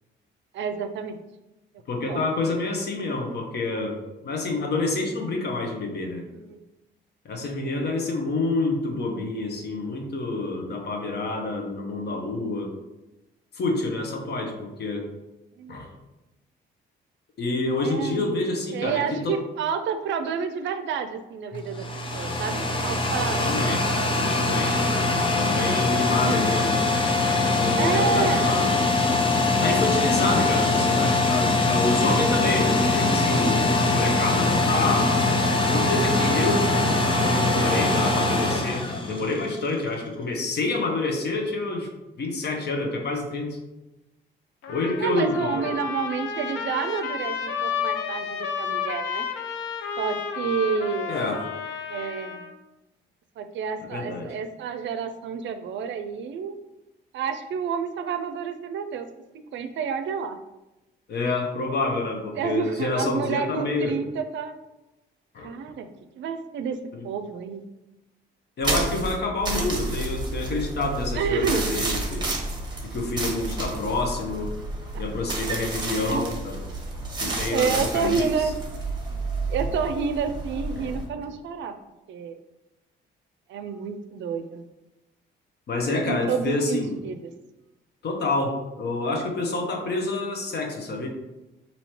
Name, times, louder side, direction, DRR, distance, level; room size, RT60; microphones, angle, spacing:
voice 1, 0.5-1.2 1.9-2.2 6.3-6.6 15.6-15.8 17.8-18.4 18.7-21.8 22.1-23.4 25.9-26.4 27.8-28.8 45.0-49.3 50.0-51.3 51.9-52.4 53.4-56.6 57.1-59.1 59.3-60.4 62.3-64.5 65.4-65.9 66.2-66.8 67.0-67.6 71.1-71.8 74.9-75.0 75.8-76.3 77.2-78.6 79.5-81.7 82.1-82.4 83.5-84.6 85.9-87.3, right 6 dB, 70° right, 9 dB, 0.4 m, -29 dB
voice 2, 1.9-6.2 7.2-12.7 13.5-15.1 15.7-15.9 17.4-19.4 23.4-23.8 24.4-24.8 25.3-26.8 27.6-28.7 29.6-35.2 35.7-36.7 37.0-41.9 42.2-43.6 44.7-45.8 51.1-51.4 53.9-54.3 61.1-64.0 65.3-65.5 66.9-67.0 68.6-72.3 72.8-74.5 75.0-76.6 77.2-78.5 80.8-80.9 85.7-87.0 88.0-91.1, left 2 dB, 55° left, 2 dB, 0.9 m, -28 dB
sound 1, 21.5-39.7, left 2 dB, 25° left, 0.5 m, -22 dB
Trumpet, 44.6-52.5, left 7 dB, 75° left, 0.5 m, -31 dB
sound 2, 68.6-81.1, right 2 dB, 20° right, 0.9 m, -31 dB
3.1 x 2.8 x 4.2 m, 1.0 s
cardioid pair, 90°, 20 cm